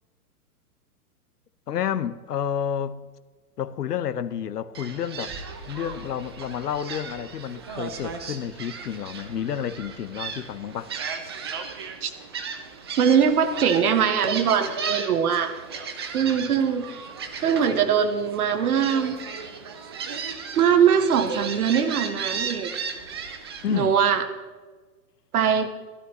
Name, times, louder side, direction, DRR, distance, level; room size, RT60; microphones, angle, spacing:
voice 1, 1.7-3.0 3.6-5.4 5.7-10.9 23.6-24.0, left 9 dB, 80° left, 0.8 m, -30 dB
Gull seagull, 4.7-23.8, right 5 dB, 20° right, 0.3 m, -35 dB
voice 2, 13.0-15.5 16.1-17.1 17.4-19.2 20.6-22.7 23.7-24.2 25.3-25.7, right 7 dB, 65° right, 1.4 m, -21 dB
14.5 x 12.5 x 3.1 m
hypercardioid pair, 125°, 47 cm